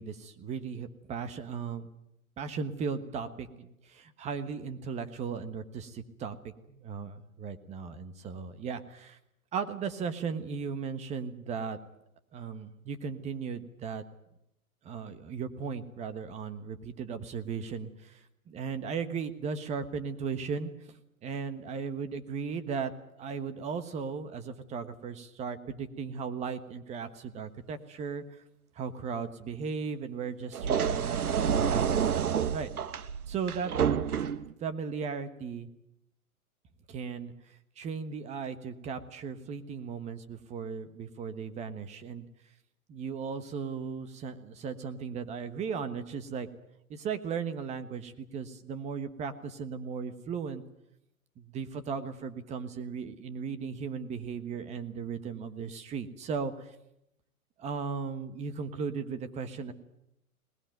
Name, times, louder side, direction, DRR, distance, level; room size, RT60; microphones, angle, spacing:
voice 1, 0.0-1.9 2.4-6.4 6.7-9.2 9.5-11.8 12.3-14.0 14.8-18.2 18.5-20.9 21.2-22.9 23.2-28.2 28.8-32.0 32.5-32.7 33.3-33.7 34.6-35.7 36.9-37.3 37.8-42.3 42.9-46.5 46.9-50.6 51.4-56.7 57.6-59.7, right 6 dB, 15° right, 11 dB, 1.3 m, -36 dB
sound 1, 30.5-34.5, right 7 dB, 85° right, 1.4 m, -28 dB
20.5 x 19.5 x 9.2 m, 0.82 s
hypercardioid pair, 145°, 43 cm